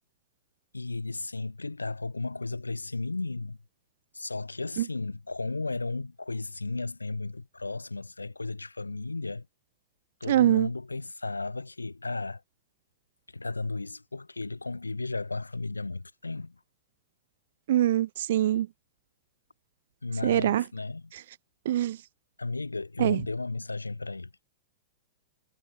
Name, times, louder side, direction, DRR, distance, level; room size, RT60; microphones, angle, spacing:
voice 1, 0.7-3.6 4.1-9.5 10.2-12.4 13.3-16.6 20.0-21.1 22.4-24.3, left 3 dB, 80° left, 8.0 m, -34 dB
voice 2, 10.3-10.7 17.7-18.7 20.2-20.6 21.6-22.0 23.0-23.2, right 12 dB, 55° right, 3.3 m, -23 dB
figure-of-eight pair, 100°, 0 cm